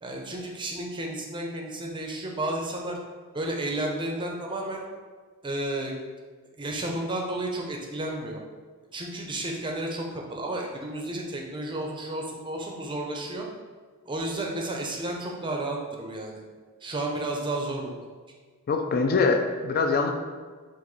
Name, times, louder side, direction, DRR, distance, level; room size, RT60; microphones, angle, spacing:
voice 1, 0.0-3.0 3.3-4.8 5.4-5.9 6.6-8.4 8.9-13.5 14.1-16.4 16.8-17.9, right 1 dB, 20° right, 0 dB, 0.6 m, -32 dB
voice 2, 18.7-20.1, left 4 dB, 45° left, 4 dB, 0.4 m, -23 dB
4.5 x 2.6 x 4.0 m, 1.5 s
head